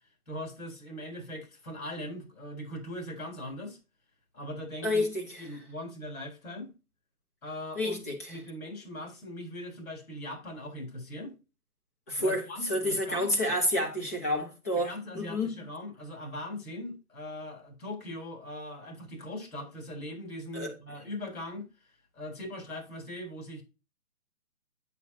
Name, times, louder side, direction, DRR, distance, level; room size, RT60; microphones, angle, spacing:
voice 1, 0.3-3.8 4.3-5.1 5.4-6.7 7.4-11.3 12.2-13.3 14.7-21.6 22.1-23.6, left 1 dB, 70° left, 4.2 m, -40 dB
voice 2, 4.8-5.2 7.8-8.4 12.1-15.6 20.5-20.7, left 1 dB, 10° left, 0.7 m, -29 dB
8.4 x 6.7 x 2.9 m
figure-of-eight pair, 150°, 45 cm